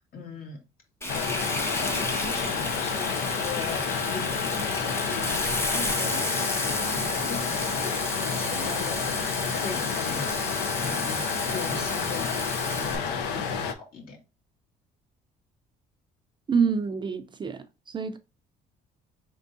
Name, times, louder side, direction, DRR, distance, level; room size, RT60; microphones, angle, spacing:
voice 1, 0.1-0.6 1.2-1.4 1.8-12.3 12.6-14.2, left 4 dB, 60° left, 2.0 m, -39 dB
Frying (food), 1.0-13.0, left 1 dB, 15° left, 0.9 m, -32 dB
sound 1, 1.1-13.7, left 6 dB, 90° left, 0.6 m, -30 dB
voice 2, 16.5-18.2, right 6 dB, 25° right, 0.4 m, -27 dB
4.4 x 3.5 x 2.6 m
cardioid pair, 110°, 17 cm